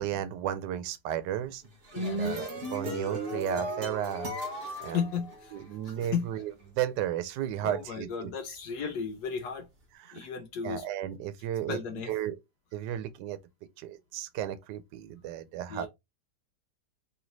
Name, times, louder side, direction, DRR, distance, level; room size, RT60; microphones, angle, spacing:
voice 1, 0.0-1.6 2.2-4.3 4.8-5.0 5.5-8.3 10.0-10.3 10.6-12.4 12.7-13.4 13.8-15.9, right 11 dB, 80° right, 1.2 m, -34 dB
sound 1, 1.6-6.0, right 1 dB, 45° right, 0.9 m, -35 dB
voice 2, 1.9-2.4 4.9-5.5 5.8-6.2 7.6-9.7 10.1-10.8 11.7-12.1 15.7-15.9, left 6 dB, 70° left, 1.1 m, -34 dB
3.1 x 3.1 x 3.8 m
omnidirectional pair, 1.9 m